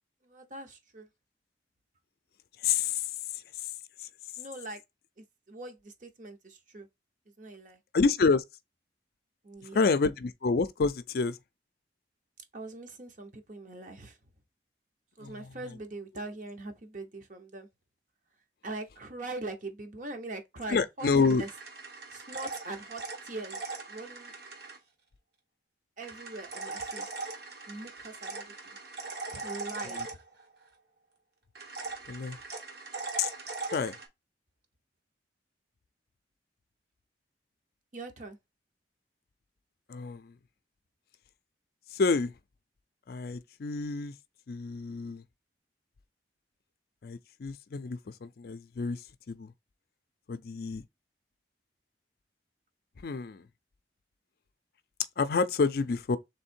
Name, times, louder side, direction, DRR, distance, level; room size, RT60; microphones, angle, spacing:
voice 1, 0.2-1.1 4.4-4.8 5.2-6.9 7.4-7.8 9.4-9.9 12.5-14.2 15.2-17.7 18.6-21.5 22.1-24.3 26.0-27.1 27.7-28.8 29.3-30.0 37.9-38.4, right 2 dB, 45° right, 0.8 m, -42 dB
voice 2, 2.6-3.0 7.9-8.4 9.7-11.4 15.2-15.5 20.7-21.4 29.9-30.1 32.1-32.4 33.2-33.3 33.7-34.0 39.9-40.3 41.9-42.3 43.1-44.1 44.5-45.2 47.0-49.0 49.3-49.5 50.3-50.8 53.0-53.4 55.2-56.2, left 4 dB, 55° left, 0.4 m, -28 dB
sound 1, 21.0-24.8 26.0-30.7 31.6-34.1, right 3 dB, 65° right, 1.3 m, -40 dB
3.6 x 3.1 x 4.3 m
head